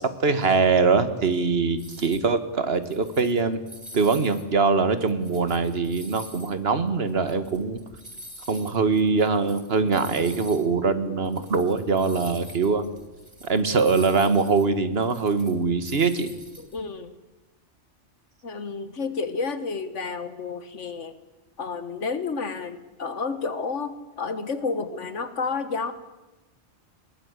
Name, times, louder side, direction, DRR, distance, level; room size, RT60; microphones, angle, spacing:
voice 1, 0.0-3.6 3.9-7.8 8.5-12.8 13.4-16.3, right 4 dB, 55° right, 11 dB, 1.8 m, -23 dB
sound 1, 1.8-2.3 2.7-4.4 4.8-10.6 11.0-11.1 11.2-16.8, equal, 25° right, 2.8 m, -46 dB
voice 2, 16.6-17.1 18.4-21.2 21.6-25.9, left 4 dB, 80° left, 12 dB, 1.8 m, -30 dB
22.0 x 19.5 x 8.2 m, 1.1 s
omnidirectional pair, 1.2 m